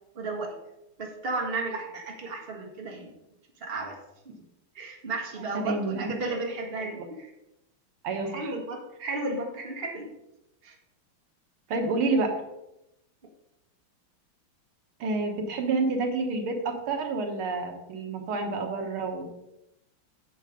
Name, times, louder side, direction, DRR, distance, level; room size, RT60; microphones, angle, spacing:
voice 1, 0.1-0.6 1.0-3.1 3.6-3.9 4.7-7.3 8.2-10.1 10.6-10.7, right 3 dB, 30° right, 0 dB, 1.7 m, -33 dB
voice 2, 5.5-6.1 6.8-6.9 8.0-8.5 11.7-12.3 15.0-19.3, right 3 dB, 80° right, 4 dB, 2.0 m, -29 dB
9.0 x 6.7 x 5.0 m, 0.89 s
omnidirectional pair, 2.4 m